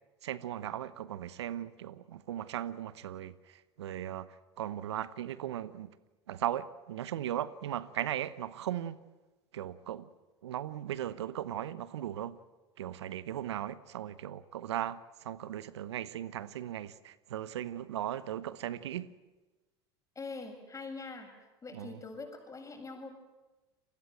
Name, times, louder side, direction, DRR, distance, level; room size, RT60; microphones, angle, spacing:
voice 1, 0.2-5.9 6.3-9.0 9.5-10.1 10.4-12.4 12.8-19.1 21.7-22.0, right 11 dB, 85° right, 1.0 m, -37 dB
voice 2, 20.2-21.3 21.6-23.1, left 3 dB, 25° left, 7.5 m, -43 dB
30.0 x 20.5 x 7.9 m
hypercardioid pair, 90°, 14 cm